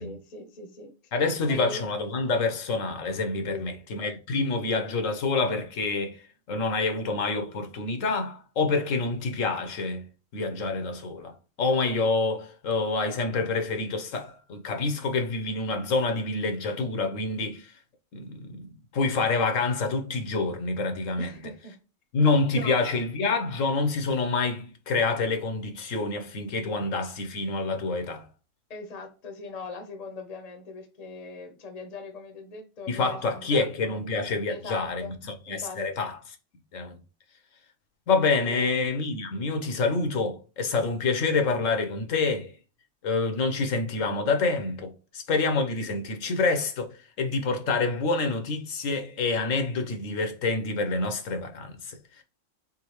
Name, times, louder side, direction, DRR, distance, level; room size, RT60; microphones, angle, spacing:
voice 1, 0.0-1.1 1.5-1.8 3.5-3.8 21.2-21.8 22.5-22.8 28.7-34.0 34.5-35.1 35.5-35.8 38.4-38.8, left 3 dB, 35° left, 0.8 m, -41 dB
voice 2, 1.1-6.2 6.5-10.0 10.3-11.3 11.6-17.7 18.1-21.4 22.1-28.3 32.9-35.0 35.5-36.2 36.7-37.0 38.1-42.5 43.0-46.9 47.2-52.2, left 3 dB, 70° left, 1.2 m, -27 dB
3.8 x 3.6 x 3.0 m
omnidirectional pair, 1.4 m